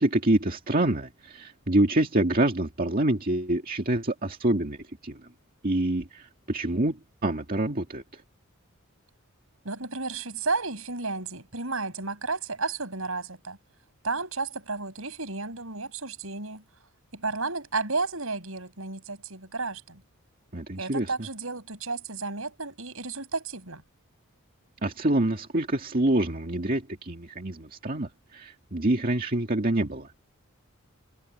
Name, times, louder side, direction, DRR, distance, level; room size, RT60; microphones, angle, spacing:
voice 1, 0.0-5.2 5.6-8.2 20.5-21.1 24.8-30.1, right 1 dB, 40° right, 2.1 m, -26 dB
voice 2, 9.6-13.6 14.0-16.6 17.1-20.0 20.8-23.8, right 3 dB, 70° right, 7.6 m, -32 dB
head